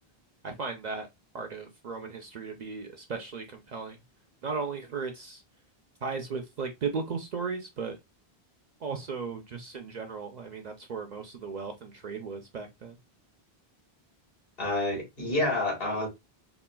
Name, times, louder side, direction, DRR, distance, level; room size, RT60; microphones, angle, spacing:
voice 1, 0.4-1.1 1.3-4.0 4.4-5.4 6.0-8.0 8.8-13.0, right 5 dB, 55° right, 0.5 m, -36 dB
voice 2, 14.6-16.1, left 2 dB, 65° left, 1.7 m, -28 dB
4.0 x 2.4 x 2.2 m
omnidirectional pair, 1.0 m